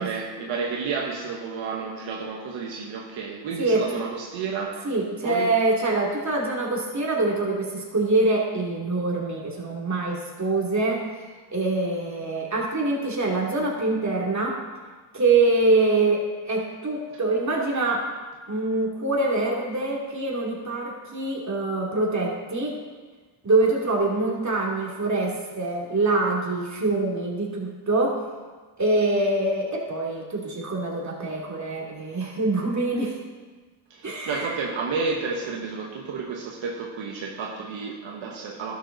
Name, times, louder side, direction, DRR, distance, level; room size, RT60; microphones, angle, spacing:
voice 1, 0.0-4.9 5.2-5.5 33.9-38.8, right 5 dB, 85° right, 0 dB, 1.2 m, -31 dB
voice 2, 3.6-4.0 4.8-11.2 11.5-14.6 15.1-18.1 18.5-22.8 23.4-28.2 28.8-33.2 34.0-34.5, right 2 dB, 40° right, -2 dB, 2.8 m, -24 dB
12.0 x 7.3 x 4.0 m, 1.4 s
cardioid pair, 60°, 45 cm